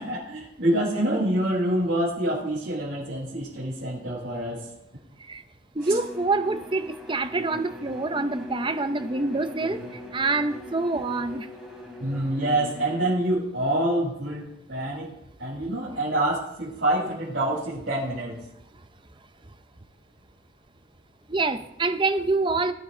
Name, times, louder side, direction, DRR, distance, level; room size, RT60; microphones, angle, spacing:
voice 1, 0.0-4.7 5.8-6.0 12.0-18.4, right 1 dB, 60° right, -10 dB, 5.9 m, -26 dB
voice 2, 5.7-9.8 10.1-11.5 21.3-22.7, right 3 dB, 25° right, 10 dB, 0.7 m, -26 dB
Bowed string instrument, 5.8-13.2, left 1 dB, ahead, 3.1 m, -41 dB
20.0 x 9.4 x 3.9 m, 0.83 s
head